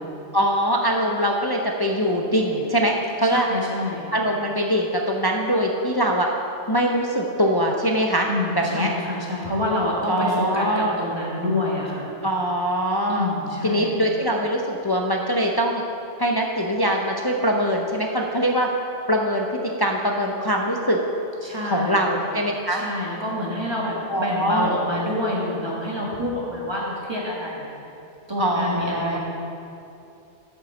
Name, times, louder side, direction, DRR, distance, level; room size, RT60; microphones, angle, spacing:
voice 1, 0.3-3.5 4.1-6.3 6.7-8.3 8.6-8.9 10.1-11.0 12.2-13.3 13.6-15.8 16.2-18.7 19.1-21.0 21.6-22.8 24.1-24.7 28.4-29.2, equal, 40° left, 0 dB, 0.3 m, -22 dB
voice 2, 3.3-4.1 8.3-12.1 13.1-14.0 21.4-22.1 22.7-27.7 28.3-29.2, left 1 dB, 20° right, -4 dB, 1.6 m, -27 dB
8.3 x 5.5 x 6.8 m, 2.7 s
omnidirectional pair, 1.2 m